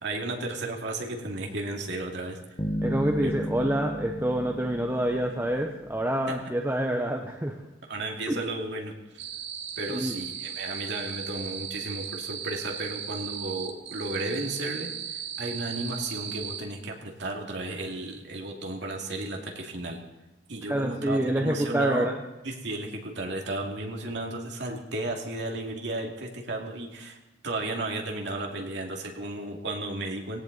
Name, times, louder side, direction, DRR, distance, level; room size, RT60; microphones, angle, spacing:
voice 1, 0.0-2.4 3.2-3.3 6.3-6.4 7.9-9.2 9.8-20.0 20.5-22.1 22.4-27.2 27.4-30.4, right 2 dB, 60° right, 1 dB, 2.5 m, -34 dB
sound 1, 2.6-6.0, equal, 25° left, 1.2 m, -34 dB
voice 2, 2.8-7.6 8.3-8.4 9.9-10.1 20.7-22.2, right 1 dB, 10° right, 2 dB, 0.9 m, -27 dB
sound 2, 9.2-16.6, right 8 dB, 80° right, 1.7 m, -37 dB
17.5 x 17.5 x 4.1 m, 1.1 s
head